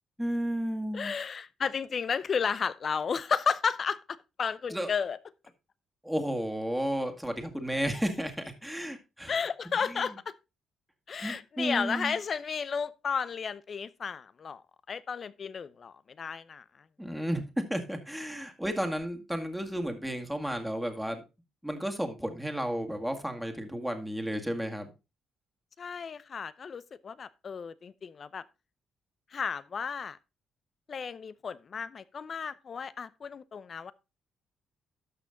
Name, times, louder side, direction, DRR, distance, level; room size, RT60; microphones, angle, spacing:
voice 1, 0.2-1.1 4.7-4.9 6.0-9.3 9.8-10.2 11.2-12.2 17.0-17.4 17.7-21.2 21.6-24.9, equal, ahead, 2.0 m, -33 dB
voice 2, 0.9-5.2 9.3-10.3 11.1-14.6 14.9-16.6 25.8-28.4 29.3-30.2 30.9-33.9, left 6 dB, 45° left, 0.7 m, -33 dB
12.5 x 6.2 x 3.8 m
cardioid pair, 90°, 0 cm